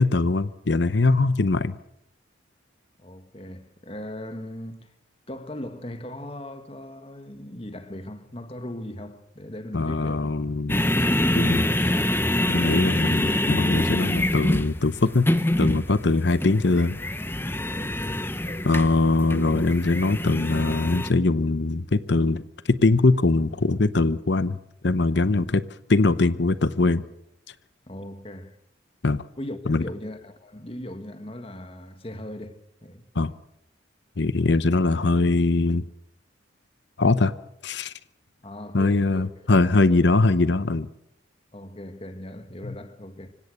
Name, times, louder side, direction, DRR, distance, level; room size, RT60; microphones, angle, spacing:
voice 1, 0.0-1.8 9.7-10.9 11.3-11.6 12.5-15.3 15.6-17.0 18.6-24.6 24.8-25.6 25.9-27.0 29.0-29.3 29.7-29.8 33.1-33.3 34.2-35.9 37.0-37.3 37.6-37.9 38.7-40.9 42.6-42.7, left 3 dB, 60° left, 0.7 m, -22 dB
voice 2, 3.0-4.9 5.3-10.3 11.0-12.3 17.7-19.0 25.3-25.5 27.9-28.6 29.4-33.1 38.4-39.3 39.9-40.1 41.5-43.3, left 1 dB, 30° left, 1.7 m, -39 dB
sound 1, 10.7-21.1, left 1 dB, 10° left, 0.8 m, -25 dB
25.5 x 16.5 x 6.6 m
head